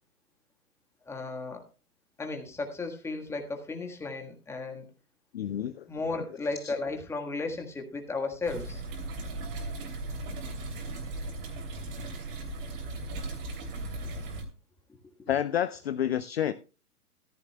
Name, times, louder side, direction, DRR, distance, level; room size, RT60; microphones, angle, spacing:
voice 1, 1.0-1.6 2.2-4.8 5.9-8.8 15.2-15.3, left 3 dB, 5° left, 3 dB, 1.4 m, -34 dB
voice 2, 5.3-5.9 15.3-16.5, left 10 dB, 45° left, 13 dB, 0.5 m, -29 dB
sound 1, 8.5-14.4, right 2 dB, 40° right, 2.9 m, -37 dB
14.0 x 13.5 x 2.2 m, 0.33 s
figure-of-eight pair, 125°, 45 cm